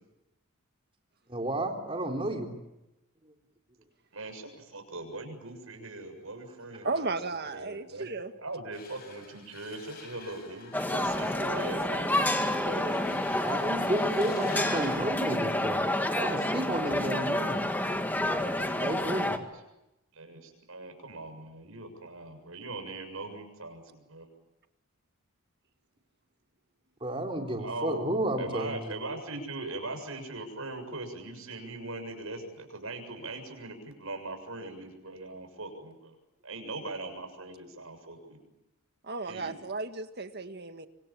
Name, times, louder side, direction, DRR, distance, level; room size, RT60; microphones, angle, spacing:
voice 1, 1.3-2.5 13.4-15.8 16.1-17.6 18.2-19.4 27.0-29.0, right 1 dB, 25° right, 2 dB, 3.8 m, -32 dB
voice 2, 4.1-7.1 7.5-8.0 8.4-13.2 20.1-24.3 27.6-36.1 36.4-38.4 39.3-39.5, right 2 dB, 75° right, 6 dB, 7.1 m, -40 dB
voice 3, 6.8-8.3 11.2-12.0 39.0-40.9, right 3 dB, 50° right, 8 dB, 1.8 m, -35 dB
sound 1, 8.7-15.0, left 4 dB, 45° left, 6.9 m, -48 dB
sound 2, 10.7-19.4, left 1 dB, 10° left, 1.7 m, -29 dB
26.0 x 26.0 x 8.8 m, 0.94 s
head